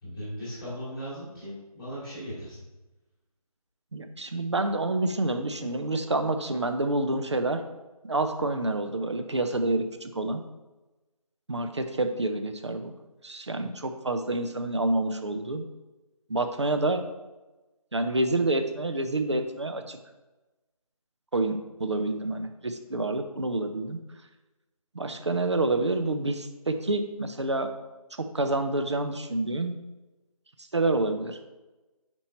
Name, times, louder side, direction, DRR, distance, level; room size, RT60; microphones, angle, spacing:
voice 1, 0.0-2.6, equal, 5° left, -14 dB, 1.3 m, -38 dB
voice 2, 3.9-7.6 8.0-10.4 11.5-12.9 13.2-15.6 16.3-17.0 17.9-20.0 21.3-24.0 24.9-27.7 28.1-29.7 30.6-31.4, right 2 dB, 50° right, 7 dB, 0.5 m, -28 dB
5.4 x 4.5 x 4.2 m, 1.1 s
figure-of-eight pair, 175°, 19 cm